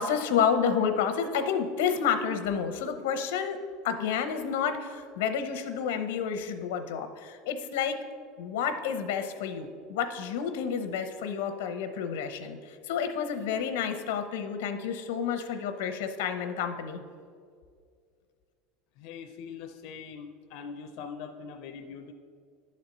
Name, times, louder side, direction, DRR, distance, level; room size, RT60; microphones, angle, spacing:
voice 1, 0.0-3.6 3.8-8.0 8.4-17.0, left 7 dB, 85° left, 8 dB, 0.8 m, -30 dB
voice 2, 19.0-22.1, left 6 dB, 55° left, 5 dB, 0.5 m, -42 dB
11.0 x 4.3 x 5.3 m, 2.2 s
cardioid pair, 165°, 0 cm